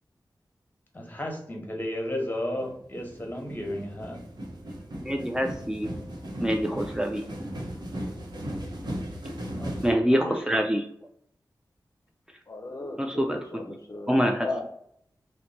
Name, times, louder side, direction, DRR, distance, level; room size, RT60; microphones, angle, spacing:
voice 1, 0.9-4.2 9.5-9.7 10.1-10.3, left 1 dB, 25° left, 1 dB, 0.9 m, -33 dB
sound 1, 2.6-9.9, equal, 65° right, 0.8 m, -37 dB
voice 2, 5.0-5.9 6.4-7.3 9.8-10.9 13.0-13.8 14.1-14.5, equal, 10° right, 3 dB, 0.3 m, -26 dB
voice 3, 12.5-14.6, left 2 dB, 50° left, 3 dB, 0.5 m, -36 dB
2.9 x 2.1 x 4.0 m, 0.68 s
wide cardioid pair, 70°, 8 cm